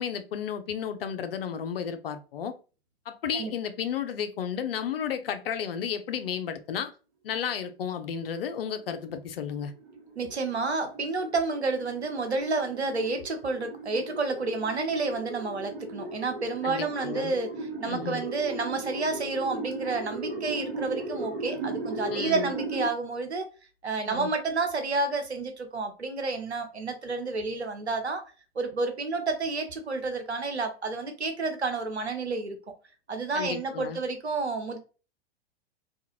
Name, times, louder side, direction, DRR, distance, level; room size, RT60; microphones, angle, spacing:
voice 1, 0.0-2.5 3.1-6.9 7.2-9.7 16.6-17.4 17.9-18.2 22.1-22.5 24.1-24.3 33.3-34.0, left 8 dB, 65° left, 0.5 m, -33 dB
sound 1, 8.5-22.9, right 2 dB, 60° right, 1.0 m, -37 dB
voice 2, 10.2-23.5 23.8-28.2 28.6-32.6 33.1-34.8, right 3 dB, 85° right, 0.7 m, -30 dB
2.4 x 2.3 x 2.8 m
figure-of-eight pair, 95°, 32 cm